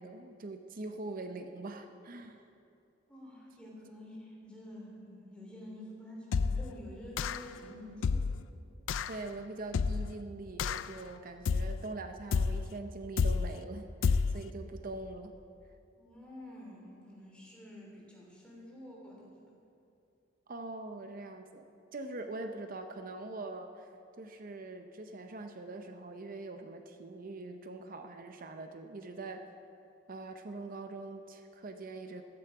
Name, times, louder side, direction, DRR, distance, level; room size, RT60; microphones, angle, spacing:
voice 1, 0.0-2.4 9.1-15.3 20.5-21.6 21.9-23.9 24.2-29.4 30.1-32.2, right 2 dB, 45° right, 6 dB, 0.7 m, -43 dB
voice 2, 3.1-8.3 16.0-19.3, left 1 dB, 5° left, -4 dB, 3.2 m, -49 dB
sound 1, 6.3-6.7 7.2-7.6 8.0-8.4 8.9-9.2 9.7-10.2 10.6-11.0 11.5-11.9 12.3-12.7 13.2-13.6 14.0-14.5, left 5 dB, 85° left, 0.4 m, -30 dB
14.5 x 12.5 x 4.8 m, 2.6 s
head